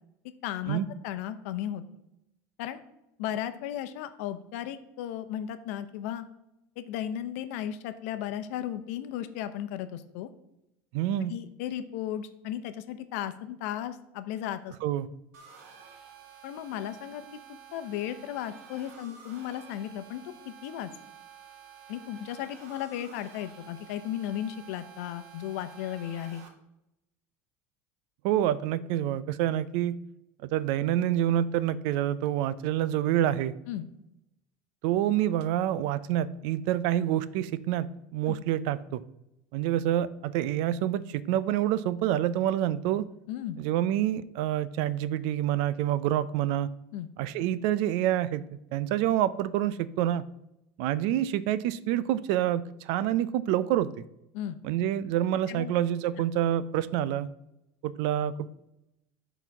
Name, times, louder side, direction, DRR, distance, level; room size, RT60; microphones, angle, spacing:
voice 1, 0.4-1.8 2.6-2.8 3.2-6.2 6.8-10.3 11.3-14.7 16.4-17.2 17.5-20.9 21.9-26.4 33.7-33.9 38.3-38.4 43.3-43.6 46.9-47.1 54.3-54.6 55.5-55.7, left 11 dB, 80° left, 10 dB, 0.8 m, -35 dB
voice 2, 10.9-11.3 14.8-15.1 28.2-29.9 30.4-33.5 34.8-39.0 39.5-43.1 43.6-46.7 47.2-48.4 48.7-50.2 50.8-54.0 54.6-57.3 57.8-58.5, right 12 dB, 65° right, 16 dB, 0.5 m, -27 dB
sound 1, 15.3-26.5, right 7 dB, 85° right, 1.6 m, -50 dB
11.5 x 4.0 x 5.9 m, 0.87 s
supercardioid pair, 140°, 8 cm